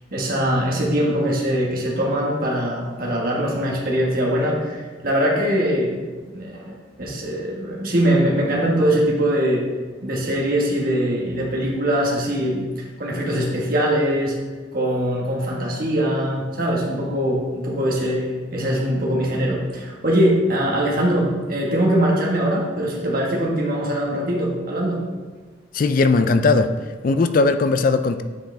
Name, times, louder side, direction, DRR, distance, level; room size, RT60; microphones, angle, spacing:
voice 1, 0.1-6.0 6.3-9.6 10.0-12.7 13.0-14.4 14.7-25.0, equal, 50° right, -3 dB, 1.5 m, -22 dB
voice 2, 25.7-26.7 27.0-28.2, left 3 dB, 45° left, 10 dB, 0.3 m, -18 dB
9.1 x 4.9 x 3.4 m, 1.4 s
head